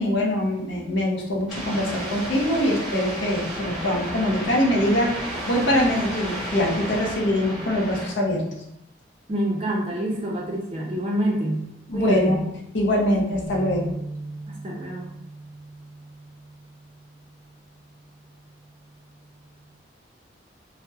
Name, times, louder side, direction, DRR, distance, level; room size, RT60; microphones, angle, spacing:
voice 1, 0.0-8.4 11.9-12.4 12.7-13.9, left 1 dB, 75° left, -1 dB, 0.6 m, -23 dB
sound 1, 1.5-8.1, equal, ahead, 0.9 m, -33 dB
voice 2, 9.3-12.4 14.5-15.1, right 1 dB, 30° right, -2 dB, 0.4 m, -27 dB
sound 2, 13.5-19.7, right 2 dB, 50° left, 1.0 m, -40 dB
2.8 x 2.0 x 2.3 m, 0.78 s
head